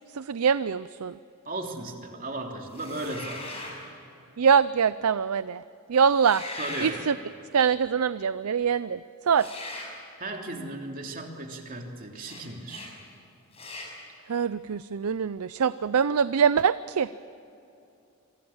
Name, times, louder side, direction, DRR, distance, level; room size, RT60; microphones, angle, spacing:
voice 1, 0.1-1.1 4.4-5.6 5.9-6.4 6.8-7.1 7.5-9.0 9.3-9.5 14.3-17.1, right 6 dB, 85° right, 15 dB, 0.5 m, -23 dB
voice 2, 1.4-3.8 6.6-7.0 10.2-13.0, right 2 dB, 40° right, 2 dB, 3.1 m, -36 dB
sound 1, 2.7-3.8 6.1-7.0 9.3-9.9 12.2-12.4 12.7-12.9 13.5-13.9, left 2 dB, 30° left, 6.7 m, -39 dB
28.0 x 24.0 x 7.2 m, 2.8 s
head